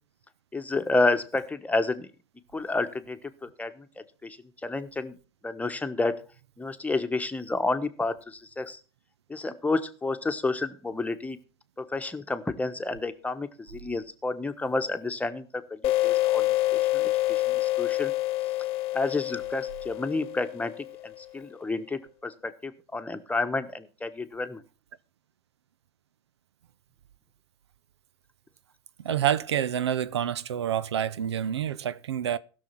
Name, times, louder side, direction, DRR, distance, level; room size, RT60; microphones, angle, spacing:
voice 1, 0.5-2.1 2.5-3.9 4.2-4.4 4.6-5.1 5.4-6.1 6.6-8.8 9.3-11.4 11.8-16.5 16.7-18.1 18.9-20.7 21.0-24.6, left 3 dB, 10° left, 1.2 m, -30 dB
sound 1, 15.8-21.2, left 17 dB, 45° left, 0.9 m, -27 dB
voice 2, 29.0-32.4, right 10 dB, 85° right, 0.5 m, -28 dB
15.5 x 6.5 x 5.8 m
hypercardioid pair, 90°, 14 cm